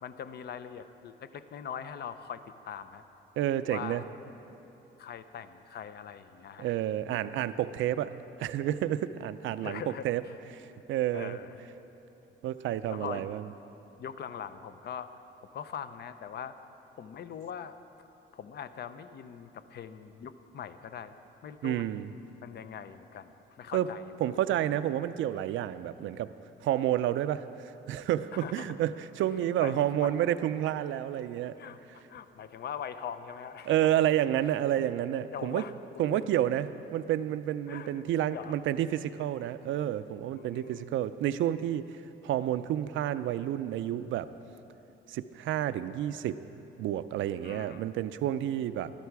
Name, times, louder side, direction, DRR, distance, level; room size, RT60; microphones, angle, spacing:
voice 1, 0.0-3.0 3.7-4.0 5.0-6.7 9.6-10.1 11.1-11.5 12.9-13.3 14.0-15.1 15.5-16.5 17.0-17.7 18.3-21.1 21.4-22.0 22.4-23.3 23.6-24.1 28.3-28.7 29.6-29.7 30.0-30.1 31.6-33.9 35.3-35.7 36.1-36.4 37.7-38.6 40.3-40.9 47.4-47.9, left 8 dB, 55° left, 11 dB, 0.6 m, -42 dB
voice 2, 3.4-4.0 6.6-8.1 8.4-10.2 10.5-10.6 10.9-11.4 12.4-13.4 21.6-22.1 23.7-23.9 24.2-26.3 26.6-31.6 33.7-35.6 36.0-41.9 42.2-44.3 45.1-46.4 46.8-48.9, right 12 dB, 75° right, 13 dB, 0.4 m, -30 dB
13.0 x 11.5 x 4.7 m, 3.0 s
cardioid pair, 90°, 20 cm